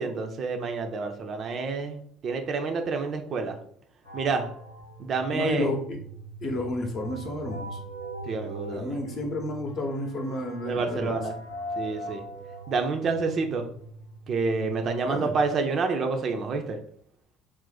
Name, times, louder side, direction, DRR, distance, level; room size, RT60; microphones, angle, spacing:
voice 1, 0.0-3.6 4.1-4.5 5.0-5.7 8.3-9.0 10.3-11.3 11.8-12.2 12.7-13.7 14.3-16.8, right 4 dB, 45° right, 5 dB, 0.4 m, -28 dB
sound 1, 4.0-14.9, right 1 dB, 85° left, 0.5 m, -41 dB
voice 2, 5.3-6.0 6.4-7.8 8.7-11.2 15.0-15.3, left 1 dB, 45° left, 2 dB, 0.7 m, -31 dB
2.5 x 2.1 x 3.9 m, 0.62 s
hypercardioid pair, 60°, 0 cm